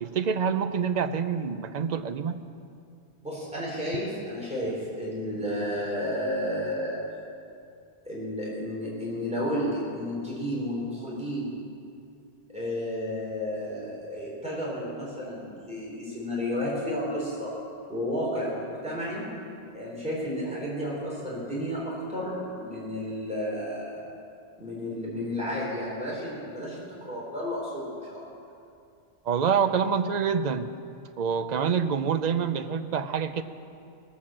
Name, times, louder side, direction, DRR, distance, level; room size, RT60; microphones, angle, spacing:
voice 1, 0.0-2.4 29.3-30.7 31.2-33.4, right 6 dB, 50° right, 10 dB, 0.6 m, -26 dB
voice 2, 3.2-7.0 8.1-11.6 12.5-17.5 17.9-19.3 19.7-24.0 24.6-28.2, equal, 5° right, -6 dB, 3.5 m, -32 dB
19.0 x 7.2 x 7.3 m, 2.5 s
omnidirectional pair, 1.1 m